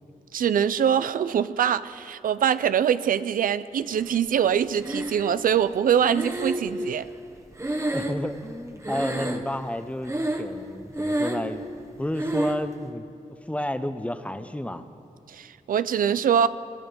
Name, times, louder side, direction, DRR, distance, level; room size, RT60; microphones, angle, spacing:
voice 1, 0.3-7.1 15.3-16.5, right 8 dB, 80° right, 14 dB, 0.4 m, -23 dB
Breathing, 4.8-5.5 6.1-8.6 8.8-9.7 10.0-10.6 10.9-11.6 12.2-12.7, right 1 dB, 20° right, 1.2 m, -29 dB
voice 2, 7.9-11.6 12.0-13.1 13.5-14.9, left 1 dB, 10° left, 10 dB, 0.8 m, -31 dB
19.0 x 13.5 x 5.3 m, 2.6 s
cardioid pair, 70°, 14 cm